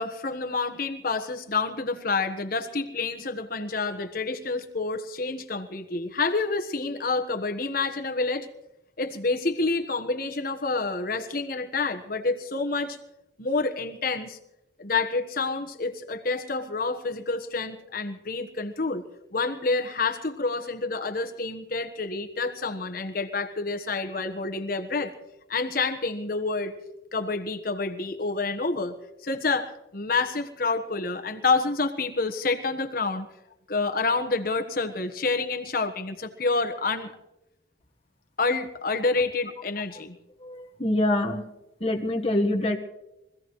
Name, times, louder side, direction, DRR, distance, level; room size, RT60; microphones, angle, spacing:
voice 1, 0.0-8.5 9.0-13.0 13.4-14.4 14.8-19.0 19.3-25.1 25.5-26.7 27.1-28.9 29.2-33.3 33.7-37.1 38.4-40.2, left 3 dB, 50° left, 5 dB, 1.3 m, -28 dB
voice 2, 40.4-41.5 41.8-42.8, left 1 dB, 30° left, 2 dB, 1.4 m, -25 dB
24.0 x 16.0 x 3.2 m, 0.92 s
head